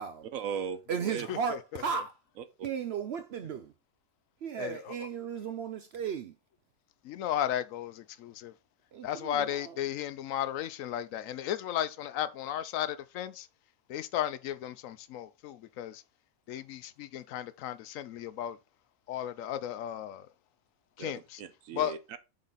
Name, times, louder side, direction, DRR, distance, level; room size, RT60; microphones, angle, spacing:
voice 1, 0.3-1.3 21.0-22.2, right 7 dB, 85° right, 1.1 m, -38 dB
voice 2, 0.9-2.2 2.6-3.7 4.4-6.4 8.9-9.9, right 6 dB, 60° right, 0.7 m, -35 dB
voice 3, 4.6-4.9 7.0-8.5 9.0-13.5 13.9-16.0 16.5-18.6 19.1-20.3 21.0-21.4 21.7-22.2, left 11 dB, 80° left, 1.0 m, -35 dB
7.5 x 4.0 x 3.9 m
omnidirectional pair, 1.4 m